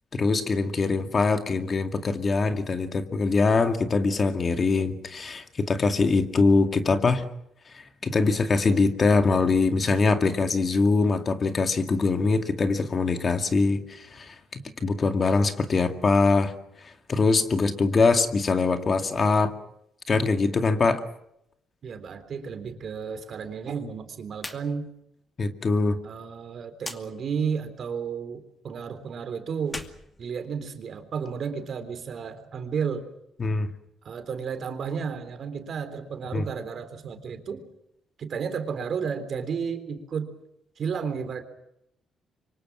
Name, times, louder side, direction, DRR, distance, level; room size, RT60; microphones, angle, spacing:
voice 1, 0.1-7.2 8.0-16.5 16.8-19.5 20.1-21.0 25.4-26.0 33.4-33.7 36.3-36.4, left 4 dB, 40° left, 7 dB, 2.2 m, -23 dB
voice 2, 21.8-24.9 26.0-29.9 30.2-33.1 34.0-37.6 38.2-40.3 40.8-41.4, right 6 dB, 55° right, 9 dB, 3.6 m, -32 dB
sound 1, 24.4-24.7 25.0-25.1 26.8-27.0 29.6-30.9, left 2 dB, 15° left, 2.4 m, -39 dB
26.5 x 24.5 x 6.2 m, 0.78 s
cardioid pair, 90°, 0 cm